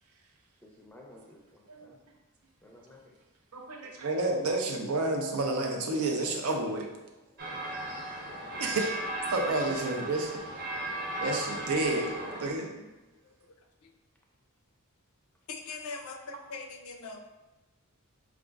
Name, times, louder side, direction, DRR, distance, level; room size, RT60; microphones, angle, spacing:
voice 1, 0.6-2.0 2.6-3.2 9.7-10.0, left 1 dB, 5° left, -1 dB, 0.4 m, -52 dB
voice 2, 3.5-6.9 8.6-8.9 9.3-10.3 11.2-12.1 12.4-12.7, right 2 dB, 90° right, 1 dB, 0.6 m, -30 dB
sound 1, 7.4-12.5, right 1 dB, 50° right, 0.9 m, -36 dB
voice 3, 15.5-17.2, left 4 dB, 90° left, 5 dB, 0.4 m, -42 dB
4.8 x 2.4 x 2.4 m, 1.1 s
head